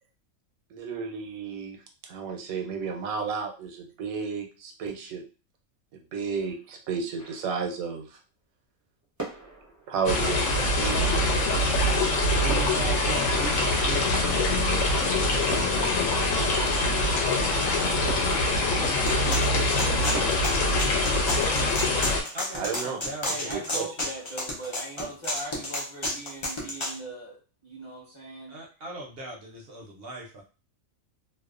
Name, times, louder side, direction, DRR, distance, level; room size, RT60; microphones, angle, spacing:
voice 1, 0.7-1.8 2.1-5.2 6.1-8.1 9.9-11.1 22.5-23.0 23.5-23.8, right 5 dB, 90° right, 2 dB, 1.0 m, -32 dB
sound 1, 7.2-7.9 9.0-10.9 11.9-15.1 15.5-17.1 18.1-19.5 20.1-22.7, right 2 dB, 25° right, 0.4 m, -42 dB
sound 2, 10.1-22.2, left 2 dB, 75° left, 1.0 m, -24 dB
voice 2, 12.4-14.6 15.0-18.6 22.3-23.5 25.0-25.1 28.5-30.4, right 1 dB, 60° right, 0 dB, 0.6 m, -40 dB
sound 3, 19.1-26.9, left 1 dB, 50° left, 0.3 m, -31 dB
voice 3, 23.3-28.6, right 1 dB, 25° left, -4 dB, 0.7 m, -40 dB
2.6 x 2.1 x 2.4 m, 0.34 s
omnidirectional pair, 1.4 m